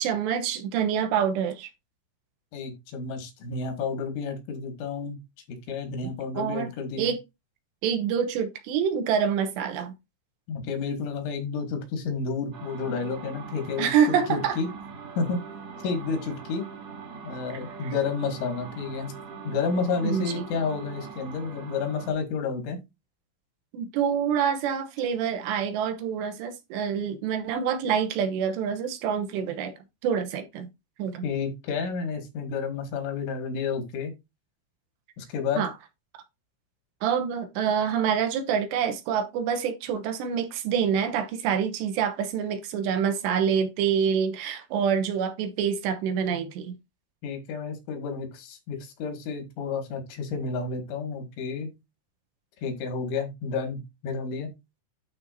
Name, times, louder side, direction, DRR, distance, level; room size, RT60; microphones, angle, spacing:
voice 1, 0.0-1.7 6.4-6.7 7.0-7.2 7.8-9.9 13.8-14.6 17.8-17.9 20.0-20.4 23.7-29.7 30.0-30.7 31.0-31.2 35.6-35.7 36.1-36.2 37.0-46.8, right 7 dB, 75° right, 3.0 m, -26 dB
voice 2, 2.5-5.2 5.5-7.1 10.5-14.7 15.2-15.4 15.8-16.7 17.2-19.1 19.5-22.8 31.2-34.1 35.2-35.6 47.2-51.7 52.6-54.5, left 5 dB, 85° left, 4.3 m, -31 dB
sound 1, 12.5-22.1, right 5 dB, 50° right, 1.8 m, -42 dB
12.0 x 4.3 x 2.7 m
omnidirectional pair, 5.3 m